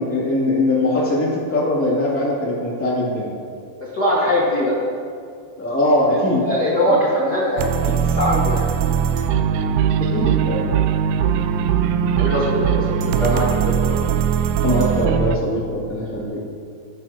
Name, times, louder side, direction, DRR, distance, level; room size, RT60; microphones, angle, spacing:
voice 1, 0.0-3.4 5.6-6.4 6.9-7.0 10.0-10.7 14.6-16.4, left 1 dB, 5° left, -6 dB, 1.7 m, -21 dB
voice 2, 3.9-4.7 6.4-8.6 12.1-14.0, equal, 80° left, -6 dB, 0.9 m, -21 dB
sound 1, 7.6-15.4, right 8 dB, 85° right, 3.0 m, -20 dB
21.5 x 10.5 x 3.0 m, 2.3 s
omnidirectional pair, 5.3 m